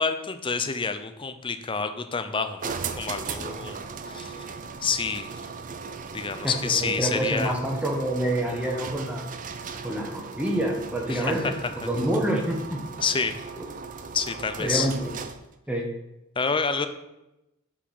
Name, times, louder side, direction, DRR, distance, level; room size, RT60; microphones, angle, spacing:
voice 1, 0.0-3.8 4.1-4.5 4.8-5.4 6.1-7.5 9.7-9.8 11.1-11.5 13.0-13.3 14.1-14.9 16.4-16.9, left 5 dB, 25° left, 9 dB, 0.5 m, -28 dB
sound 1, 2.6-15.5, right 5 dB, 35° right, 0.5 m, -38 dB
voice 2, 6.4-9.2 9.8-11.5 11.8-12.8 13.6-13.7 14.6-15.1 15.7-15.9, right 1 dB, 5° right, 0 dB, 1.0 m, -27 dB
7.3 x 4.5 x 5.5 m, 0.92 s
head